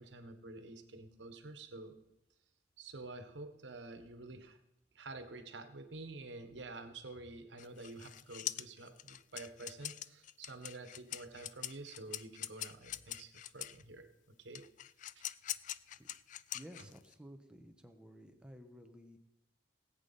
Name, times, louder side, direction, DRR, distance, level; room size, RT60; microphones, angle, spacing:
voice 1, 0.0-2.0 2.8-4.6 4.9-14.7 15.2-15.3, right 2 dB, 85° right, 8 dB, 1.3 m, -49 dB
sound 1, 7.6-13.8 14.5-17.1, left 13 dB, 45° left, 0.3 m, -43 dB
voice 2, 16.5-19.2, equal, 5° right, 5 dB, 1.1 m, -54 dB
18.5 x 8.5 x 4.1 m, 0.90 s
head